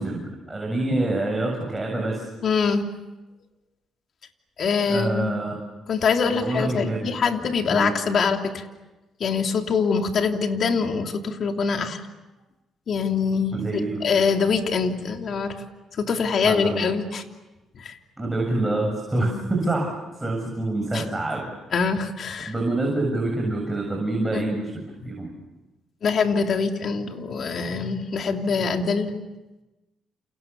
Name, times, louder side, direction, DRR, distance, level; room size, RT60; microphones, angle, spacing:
voice 1, 0.0-2.3 4.8-5.5 6.2-7.1 7.7-7.9 10.7-10.8 13.5-14.0 16.4-16.8 18.2-21.5 22.5-24.7 25.0-25.3, right 2 dB, 15° right, 0 dB, 7.3 m, -26 dB
voice 2, 2.4-2.8 4.6-5.3 5.9-8.6 9.2-12.0 12.9-15.5 16.0-17.2 17.8-18.0 19.2-19.5 20.9-21.0 21.7-22.5 24.3-24.4 25.0-25.1 26.0-29.1, left 5 dB, 55° left, 4 dB, 3.1 m, -24 dB
29.0 x 29.0 x 7.1 m, 1.1 s
cardioid pair, 90°, 0 cm